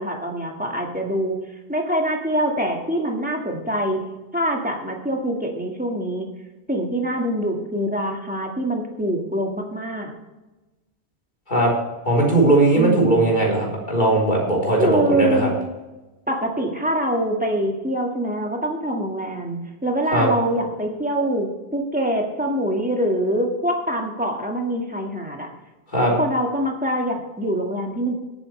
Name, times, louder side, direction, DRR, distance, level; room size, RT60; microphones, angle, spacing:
voice 1, 0.0-1.4 1.7-4.0 4.3-6.3 6.7-10.1 12.7-13.3 14.8-15.5 16.3-25.5 26.2-28.2, equal, 10° right, 1 dB, 1.8 m, -24 dB
voice 2, 12.0-15.5 20.1-20.3 25.9-26.1, right 2 dB, 45° left, -3 dB, 3.9 m, -18 dB
17.5 x 8.9 x 3.3 m, 1.1 s
omnidirectional pair, 1.1 m